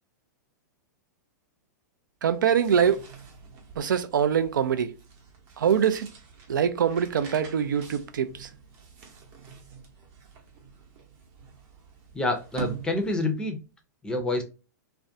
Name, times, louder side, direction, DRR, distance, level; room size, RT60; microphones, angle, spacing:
voice 1, 2.2-3.0 3.8-4.9 5.6-6.1 6.5-8.5, right 8 dB, 85° right, 0.4 m, -24 dB
sound 1, 2.3-13.5, right 6 dB, 50° right, 0.8 m, -46 dB
voice 2, 12.1-13.6 14.0-14.4, left 2 dB, 10° left, 0.5 m, -27 dB
2.4 x 2.1 x 2.5 m
hypercardioid pair, 125°, 10 cm